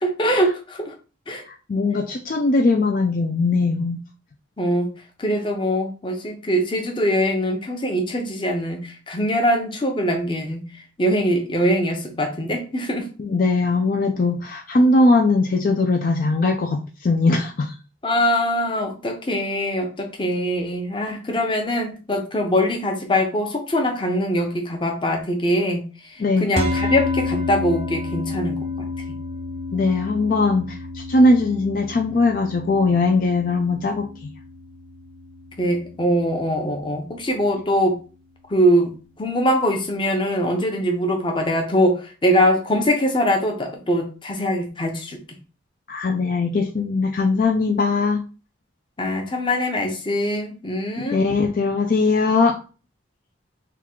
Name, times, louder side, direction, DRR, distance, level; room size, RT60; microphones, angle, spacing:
voice 1, 0.0-0.9 1.3-1.4 4.6-4.9 5.2-10.7 11.0-13.1 18.0-28.9 35.6-38.0 38.5-45.2 49.0-51.2, equal, 25° left, 3 dB, 0.7 m, -22 dB
voice 2, 1.5-4.0 13.2-17.7 26.2-26.5 29.7-34.1 45.9-48.2 51.1-52.6, left 3 dB, 45° left, 2 dB, 0.4 m, -20 dB
sound 1, 26.6-37.0, left 2 dB, 30° right, 0.5 m, -31 dB
3.6 x 2.3 x 4.5 m, 0.35 s
head